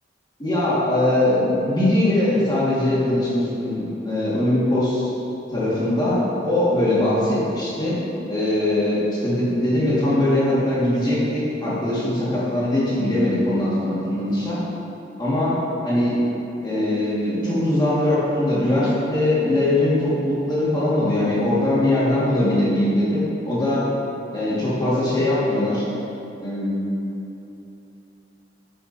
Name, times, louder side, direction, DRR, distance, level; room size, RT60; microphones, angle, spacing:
voice 1, 0.4-5.1 5.5-8.0 8.3-14.6 15.2-15.6 15.8-16.2 16.6-23.8 24.3-25.8 26.4-27.0, left 1 dB, 25° left, -9 dB, 1.7 m, -21 dB
9.4 x 6.6 x 2.7 m, 2.9 s
head